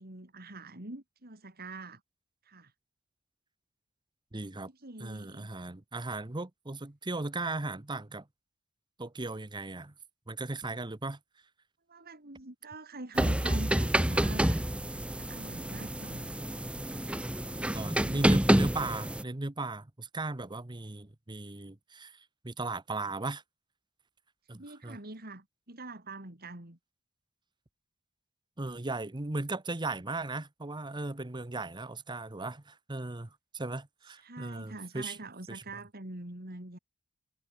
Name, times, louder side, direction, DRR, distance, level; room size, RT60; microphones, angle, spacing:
voice 1, 0.0-2.0 2.4-2.7 4.7-5.5 11.9-14.6 15.2-16.4 24.6-26.8 34.2-36.8, right 2 dB, 45° right, 3.5 m, -45 dB
voice 2, 4.3-4.7 5.0-8.2 9.0-9.9 10.3-11.2 17.7-22.2 22.4-23.4 24.5-25.0 28.6-35.2 35.5-35.6, right 2 dB, 20° right, 0.9 m, -37 dB
sound 1, 13.2-19.2, right 1 dB, 5° right, 0.6 m, -28 dB
head